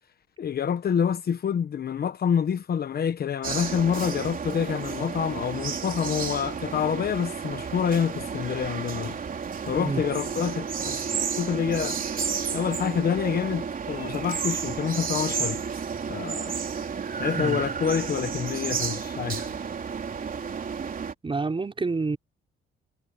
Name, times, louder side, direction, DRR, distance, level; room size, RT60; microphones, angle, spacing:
voice 1, 0.4-9.2 9.7-11.0 11.4-12.0 12.5-15.6 16.1-16.5 17.1-19.5, left 7 dB, 50° left, 1.2 m, -27 dB
sound 1, 3.4-21.1, right 6 dB, 45° right, 3.6 m, -32 dB
voice 2, 21.2-22.2, right 3 dB, 25° right, 5.0 m, -28 dB
cardioid pair, 90°, 20 cm